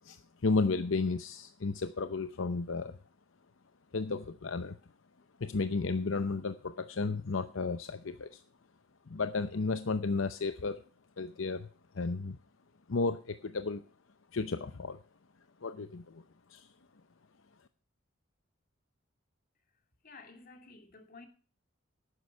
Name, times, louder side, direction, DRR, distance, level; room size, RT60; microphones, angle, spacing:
voice 1, 0.0-3.0 3.9-4.8 5.4-8.4 9.1-10.8 11.2-11.7 11.9-12.4 12.9-13.8 14.3-15.0 15.6-16.2 16.5-16.7, left 3 dB, 70° left, 0.7 m, -33 dB
voice 2, 20.0-21.3, left 3 dB, 45° left, 2.4 m, -52 dB
12.0 x 9.5 x 5.6 m
head